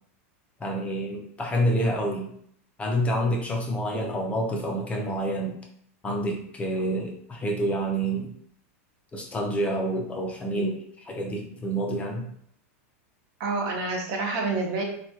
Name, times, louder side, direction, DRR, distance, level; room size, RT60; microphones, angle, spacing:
voice 1, 0.6-2.3 2.8-5.6 6.0-8.3 9.1-10.8 11.1-12.3, right 1 dB, 15° left, 0 dB, 0.5 m, -28 dB
voice 2, 13.4-14.8, right 3 dB, 50° right, 1 dB, 0.9 m, -28 dB
3.1 x 2.2 x 2.9 m, 0.67 s
supercardioid pair, 130°, 8 cm